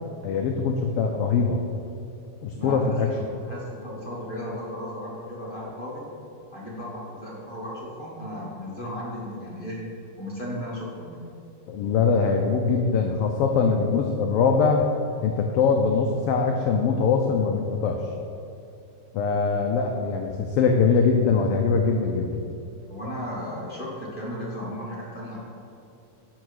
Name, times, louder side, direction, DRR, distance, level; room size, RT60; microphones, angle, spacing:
voice 1, 0.2-1.6 2.4-3.1 11.7-14.8 15.2-18.0 19.1-22.4, left 5 dB, 85° left, 3 dB, 1.3 m, -22 dB
voice 2, 2.5-6.0 6.5-9.9 10.2-11.3 22.9-25.4, equal, 25° left, -6 dB, 1.4 m, -35 dB
10.5 x 4.7 x 6.4 m, 2.7 s
omnidirectional pair, 3.3 m